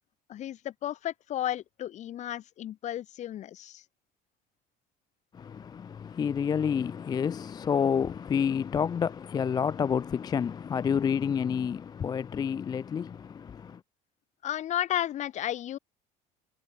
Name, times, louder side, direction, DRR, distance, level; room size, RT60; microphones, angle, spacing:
voice 1, 0.3-3.8 14.4-15.8, left 12 dB, 45° left, 1.2 m, -33 dB
voice 2, 5.3-13.8, left 7 dB, 25° left, 0.4 m, -29 dB
cardioid pair, 120°, 16 cm